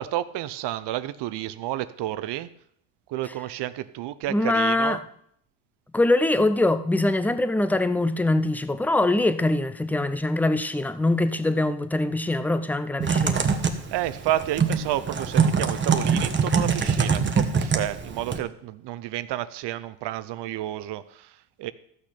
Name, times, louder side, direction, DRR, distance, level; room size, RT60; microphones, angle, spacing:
voice 1, 0.0-2.5 3.1-5.0 13.9-21.7, right 14 dB, 55° right, 0.7 m, -30 dB
voice 2, 4.3-5.0 5.9-13.4, left 2 dB, 5° left, 0.6 m, -23 dB
Typing, 13.0-18.4, right 5 dB, 20° right, 1.3 m, -24 dB
14.0 x 6.2 x 5.8 m
supercardioid pair, 95°, 49 cm